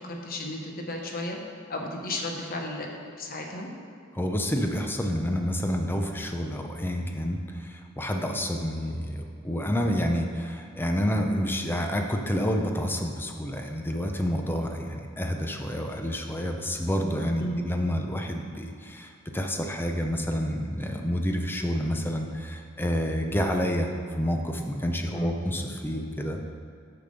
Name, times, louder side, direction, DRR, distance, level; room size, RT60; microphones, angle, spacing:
voice 1, 0.0-1.4 1.7-2.9 3.2-3.7 17.4-17.7 25.1-25.4, left 1 dB, 45° left, 1 dB, 1.0 m, -33 dB
voice 2, 4.1-26.5, equal, 10° left, 3 dB, 0.6 m, -29 dB
6.8 x 6.0 x 5.2 m, 2.4 s
head